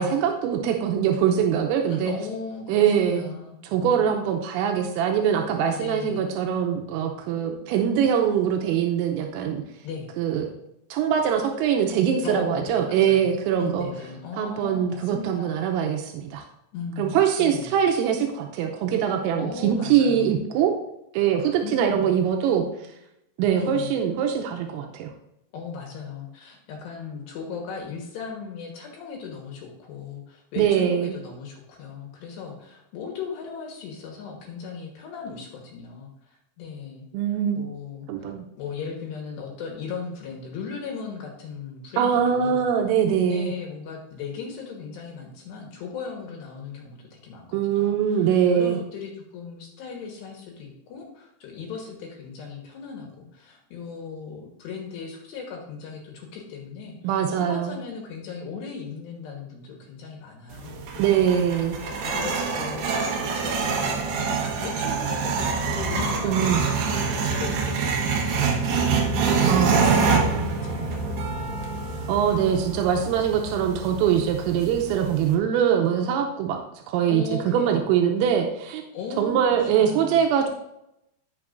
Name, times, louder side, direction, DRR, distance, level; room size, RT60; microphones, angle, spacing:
voice 1, 0.0-2.1 2.7-3.3 3.6-9.6 10.2-10.5 10.9-13.9 14.4-16.4 17.0-20.7 21.1-22.7 23.4-25.1 30.6-31.2 37.1-37.6 38.1-38.4 42.0-43.5 47.5-48.8 57.0-57.8 61.0-61.8 66.2-66.6 69.4-70.2 72.1-76.6 76.9-78.8 79.2-80.5, right 8 dB, 85° right, 3 dB, 3.4 m, -23 dB
voice 2, 1.9-4.1 5.7-6.3 9.8-10.1 12.2-13.3 13.6-15.5 16.7-17.8 19.4-20.4 21.6-22.1 23.5-23.9 25.5-37.1 37.5-38.3 38.6-42.7 43.2-61.3 61.9-71.2 71.4-71.8 77.1-77.9 78.9-80.3, left 5 dB, 70° left, 1 dB, 2.9 m, -37 dB
sound 1, 60.5-75.3, right 5 dB, 70° right, 2.8 m, -26 dB
17.0 x 6.1 x 2.5 m, 0.84 s
omnidirectional pair, 5.8 m